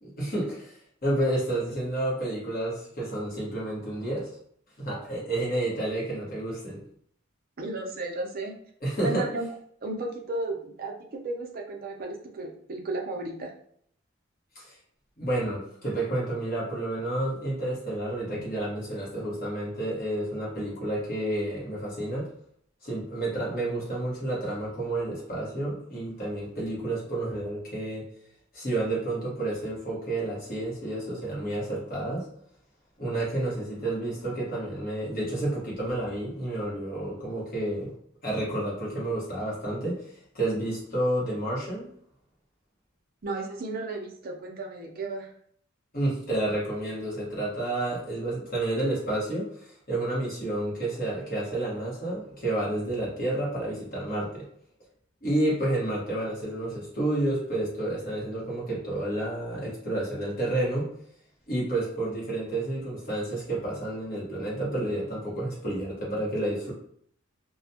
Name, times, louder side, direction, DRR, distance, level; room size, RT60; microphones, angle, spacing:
voice 1, 0.0-4.3 4.8-6.8 8.8-9.2 14.5-14.7 15.2-22.3 22.8-28.0 28.5-32.3 33.0-37.9 38.2-41.9 45.9-54.4 55.2-60.9 61.5-66.7, right 1 dB, 45° left, -5 dB, 1.1 m, -30 dB
voice 2, 7.6-8.5 9.0-9.5 9.8-13.5 43.2-45.3, right 2 dB, 45° right, 1 dB, 0.5 m, -34 dB
2.4 x 2.2 x 2.7 m, 0.64 s
head